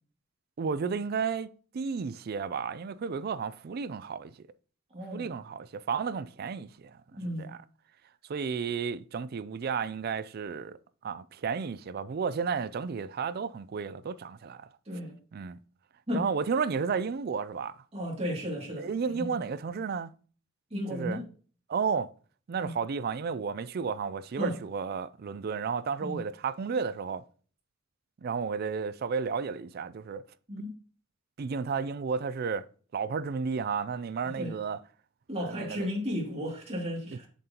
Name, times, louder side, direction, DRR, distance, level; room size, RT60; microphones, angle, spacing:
voice 1, 0.6-1.5 1.7-4.3 5.1-7.6 8.3-10.8 11.0-14.7 15.3-15.6 16.1-17.8 18.8-20.1 20.9-21.2 21.7-22.1 22.5-27.2 28.2-30.2 30.6-30.7 31.4-32.7 32.9-34.8 35.4-35.9 37.1-37.3, right 5 dB, 50° right, 0.4 m, -32 dB
voice 2, 4.9-5.3 7.1-7.5 14.9-15.2 16.1-16.2 17.9-19.3 20.7-21.2 22.6-22.7 24.4-24.6 26.0-26.2 30.5-30.7 34.4-34.5 35.3-37.3, equal, 30° right, 2.4 m, -34 dB
7.3 x 6.8 x 2.9 m
head